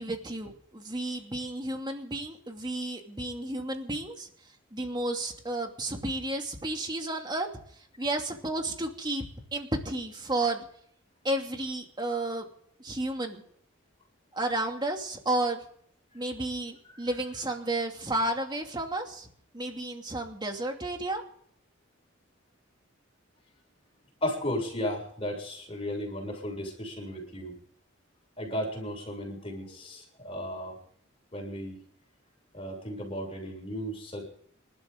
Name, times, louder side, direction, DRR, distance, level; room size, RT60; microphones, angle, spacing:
voice 1, 0.0-4.3 4.7-7.5 8.0-9.2 9.5-10.7 11.2-12.5 12.8-13.4 14.3-15.6 16.1-19.3 19.5-21.2, right 1 dB, 20° right, 3 dB, 2.7 m, -32 dB
voice 2, 24.2-27.6 28.4-30.8 31.3-31.8 32.5-34.2, equal, 30° left, 0 dB, 7.2 m, -35 dB
27.5 x 12.5 x 3.9 m, 0.63 s
head